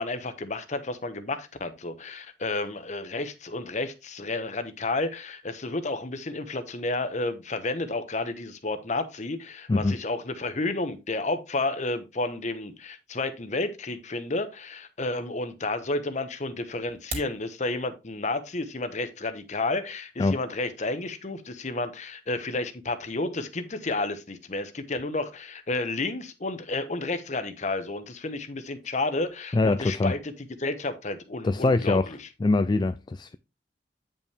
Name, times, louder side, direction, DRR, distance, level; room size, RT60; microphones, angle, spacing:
voice 1, 0.0-32.2, left 2 dB, 45° left, 1.0 m, -31 dB
sound 1, 16.9-17.4, right 3 dB, 40° right, 2.6 m, -36 dB
voice 2, 29.5-30.1 31.4-32.1 32.4-33.3, left 3 dB, 25° left, 0.3 m, -23 dB
9.0 x 5.5 x 3.3 m
head